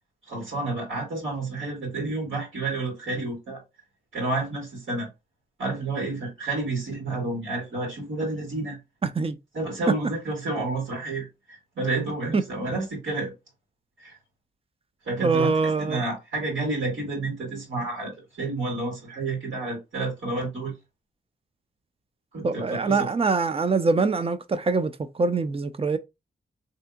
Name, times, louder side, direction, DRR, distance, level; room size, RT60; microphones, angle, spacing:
voice 1, 0.3-3.6 4.1-5.1 5.6-8.8 9.5-13.3 14.0-14.2 15.1-20.7 22.3-23.1, right 2 dB, 85° right, 1.7 m, -30 dB
voice 2, 9.0-9.4 12.3-12.4 15.2-16.0 22.4-26.0, right 4 dB, 30° right, 0.4 m, -24 dB
3.5 x 2.7 x 2.3 m
cardioid pair, 80°, 20 cm